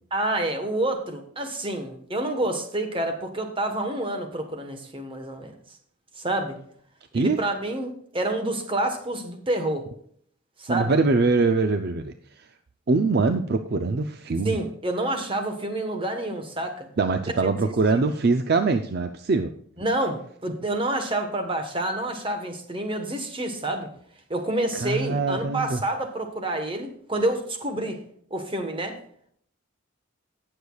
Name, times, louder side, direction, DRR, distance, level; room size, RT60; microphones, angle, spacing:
voice 1, 0.1-5.5 6.2-6.6 7.1-9.9 10.6-10.9 14.4-16.9 17.4-17.5 19.8-23.9 24.3-28.0 28.3-29.0, right 1 dB, 25° right, 5 dB, 1.2 m, -28 dB
voice 2, 10.7-12.5 12.9-14.6 17.0-19.5 24.7-25.8, right 3 dB, 45° right, 7 dB, 0.5 m, -23 dB
17.5 x 6.7 x 2.4 m, 0.63 s
head